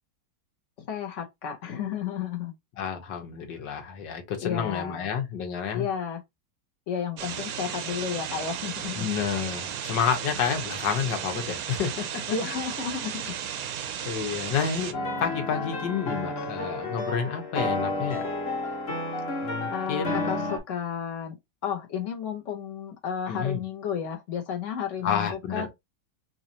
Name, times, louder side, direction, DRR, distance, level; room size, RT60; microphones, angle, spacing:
voice 1, 0.8-2.5 4.4-5.1 5.7-6.2 6.9-9.1 12.3-13.3 19.7-21.4 21.6-25.7, left 7 dB, 55° left, 0.9 m, -32 dB
voice 2, 2.8-5.9 9.0-12.2 14.0-18.2 19.4-20.4 23.3-23.6 25.0-25.7, left 7 dB, 85° left, 1.7 m, -30 dB
sound 1, 7.2-14.9, right 9 dB, 65° right, 0.9 m, -34 dB
sound 2, 14.9-20.6, left 2 dB, 40° left, 1.3 m, -31 dB
4.1 x 2.7 x 2.8 m
omnidirectional pair, 1.9 m